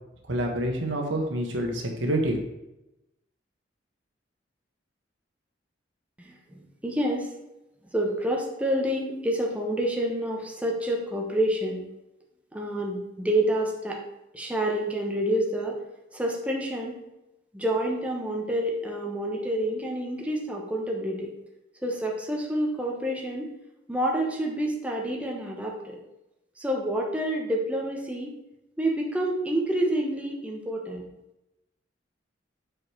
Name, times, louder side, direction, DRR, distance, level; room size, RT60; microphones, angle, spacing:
voice 1, 0.3-2.4, right 1 dB, 85° right, 2 dB, 1.4 m, -27 dB
voice 2, 6.2-7.3 7.9-11.8 12.5-14.0 14.3-15.8 16.1-17.0 17.5-21.3 21.8-23.5 23.9-26.0 26.6-28.4 28.8-31.1, right 1 dB, 5° right, -1 dB, 0.9 m, -28 dB
6.5 x 5.1 x 4.5 m, 0.93 s
head